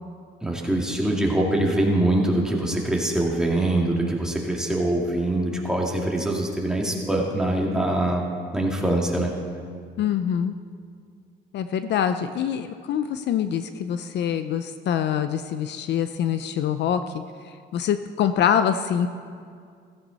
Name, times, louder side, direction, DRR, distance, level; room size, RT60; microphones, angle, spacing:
voice 1, 0.4-8.2 8.5-9.3, right 1 dB, 5° right, -2 dB, 2.3 m, -23 dB
voice 2, 10.0-10.5 11.5-17.0 17.7-19.1, left 9 dB, 65° left, 10 dB, 0.6 m, -24 dB
15.0 x 15.0 x 4.1 m, 2.2 s
cardioid pair, 110°, 20 cm